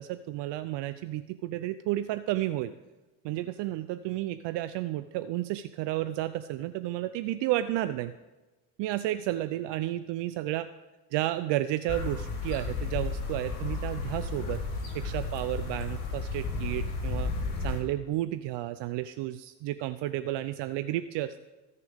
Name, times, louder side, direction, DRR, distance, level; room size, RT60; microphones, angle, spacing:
voice 1, 0.0-2.7 3.2-8.1 8.8-10.7 11.1-17.3 17.6-21.4, right 14 dB, 65° right, 12 dB, 0.6 m, -32 dB
sound 1, 11.9-17.8, left 3 dB, 75° left, 3.5 m, -33 dB
18.5 x 6.8 x 3.5 m, 1.1 s
supercardioid pair, 100°, 47 cm